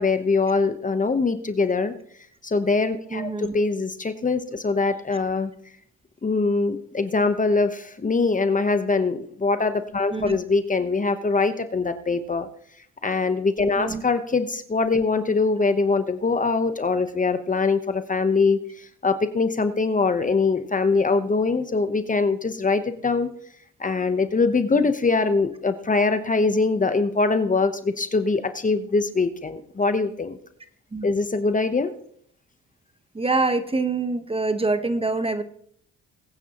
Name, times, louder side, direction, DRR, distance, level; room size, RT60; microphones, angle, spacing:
voice 1, 0.0-1.9 2.4-5.5 6.2-12.5 13.0-23.3 23.8-30.4 31.0-31.9, left 4 dB, 25° left, 9 dB, 1.0 m, -23 dB
voice 2, 3.1-3.6 5.1-5.2 10.1-10.4 13.8-14.0 30.9-31.1 33.1-35.4, right 3 dB, 20° right, 9 dB, 1.1 m, -25 dB
21.0 x 9.1 x 3.0 m, 0.64 s
cardioid pair, 90°, 30 cm